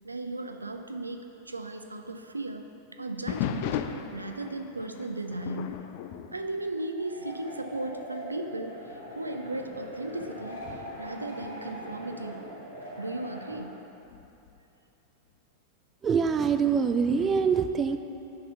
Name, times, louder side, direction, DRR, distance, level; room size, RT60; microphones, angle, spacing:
voice 1, 0.0-2.6 2.9-5.8 6.3-8.8 9.2-10.6 11.0-12.5 13.0-13.8, right 2 dB, 80° right, 6 dB, 0.5 m, -36 dB
sound 1, 3.3-7.4 7.7-8.1 8.7-8.8 9.5-12.2 14.1-14.6, left 9 dB, 45° left, 0.4 m, -37 dB
sound 2, 6.9-13.6, equal, 80° left, 1.7 m, -42 dB
voice 2, 16.0-18.0, right 6 dB, 25° right, 9 dB, 0.3 m, -24 dB
9.3 x 5.0 x 5.6 m, 2.8 s
figure-of-eight pair, 90°, 0 cm